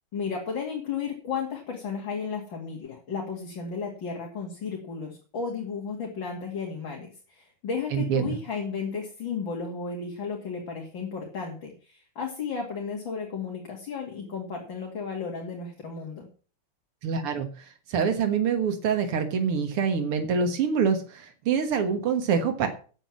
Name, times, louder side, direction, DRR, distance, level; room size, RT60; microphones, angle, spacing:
voice 1, 0.1-16.3, left 5 dB, 60° left, 0 dB, 3.1 m, -34 dB
voice 2, 7.9-8.4 17.0-22.7, right 6 dB, 90° right, 6 dB, 2.4 m, -26 dB
9.9 x 7.8 x 7.4 m, 0.39 s
omnidirectional pair, 2.4 m